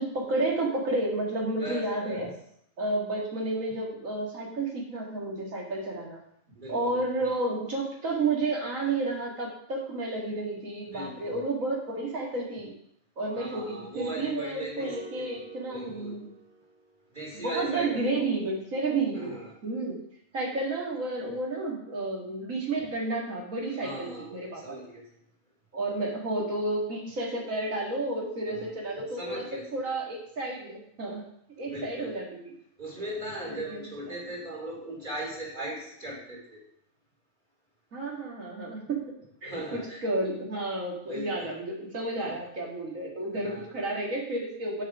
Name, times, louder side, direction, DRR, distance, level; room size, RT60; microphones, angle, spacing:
voice 1, 0.0-2.3 2.8-6.2 6.7-12.7 13.2-16.3 17.3-19.3 19.6-20.0 20.3-24.8 25.7-29.4 29.7-31.2 31.6-32.5 33.7-34.2 37.9-39.6 40.0-44.8, right 2 dB, 85° right, -2 dB, 2.5 m, -31 dB
voice 2, 1.6-2.3 6.5-7.3 10.9-11.5 13.3-15.0 15.7-16.1 17.1-18.3 19.1-19.5 23.6-25.0 28.5-28.7 29.1-29.8 31.6-32.1 32.8-36.6 39.4-40.0 41.0-41.5 42.1-42.3 43.4-43.7, right 1 dB, 35° right, -4 dB, 3.2 m, -39 dB
sound 1, 14.8-17.1, right 2 dB, 70° right, 3.1 m, -48 dB
9.9 x 4.9 x 4.9 m, 0.69 s
omnidirectional pair, 1.4 m